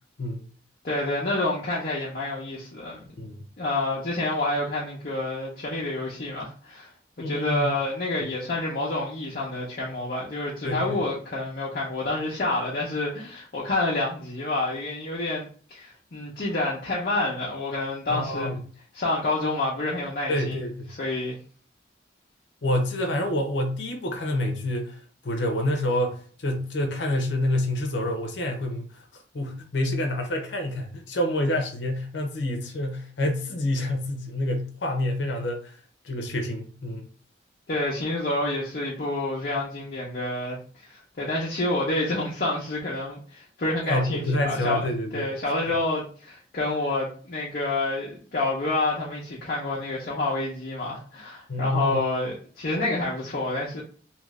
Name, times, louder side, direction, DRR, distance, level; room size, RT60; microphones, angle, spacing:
voice 1, 0.8-3.0 3.6-6.9 7.2-18.5 18.9-20.6 21.0-21.4 37.7-44.9 45.1-53.8, left 2 dB, 55° left, 0.7 m, -28 dB
voice 2, 7.2-7.7 8.2-8.3 10.6-11.0 18.1-18.6 20.3-20.9 22.6-35.7 36.0-37.1 43.8-45.3 51.5-52.0, left 1 dB, 90° left, 0.7 m, -28 dB
2.8 x 2.5 x 3.2 m
head